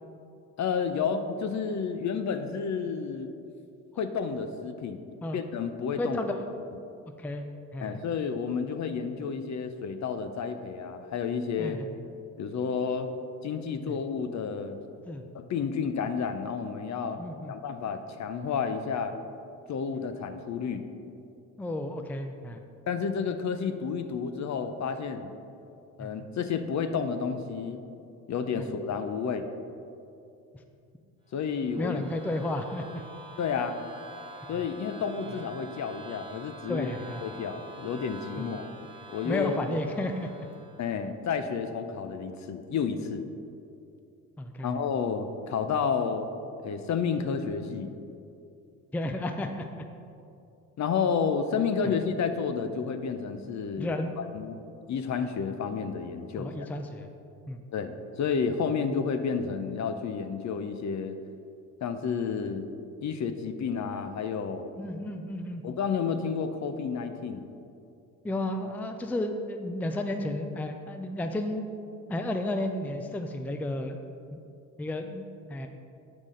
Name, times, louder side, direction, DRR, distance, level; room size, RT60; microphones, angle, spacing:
voice 1, 0.6-3.3 4.0-5.0 5.3-6.2 7.8-11.8 12.4-13.1 13.4-14.8 15.3-17.2 17.5-19.1 19.7-20.8 22.9-25.3 26.0-27.8 28.3-29.5 31.3-32.0 33.4-33.8 34.5-36.9 37.2-38.7 39.1-39.6 40.8-43.2 44.6-46.3 46.6-47.9 50.8-54.0 54.3-54.6 54.9-56.7 57.7-61.2 61.8-62.7 63.0-64.7 65.6-67.5, left 6 dB, 45° left, 9 dB, 0.7 m, -31 dB
voice 2, 6.0-6.4 7.2-8.0 11.6-11.9 13.9-14.0 15.1-15.2 17.2-17.5 19.9-20.0 21.6-22.6 26.0-26.1 28.6-28.7 31.8-33.0 34.5-34.6 36.7-37.2 38.4-38.5 39.2-40.3 44.4-44.8 48.9-49.7 51.8-51.9 53.8-54.1 56.4-57.1 57.5-57.6 64.7-65.6 68.2-71.7 72.1-74.0 74.3-74.4 74.8-75.7, left 1 dB, 5° left, 6 dB, 0.5 m, -32 dB
sound 1, 31.3-41.0, right 2 dB, 15° right, 1.5 m, -47 dB
8.4 x 6.1 x 3.8 m, 2.6 s
hypercardioid pair, 65°, 40 cm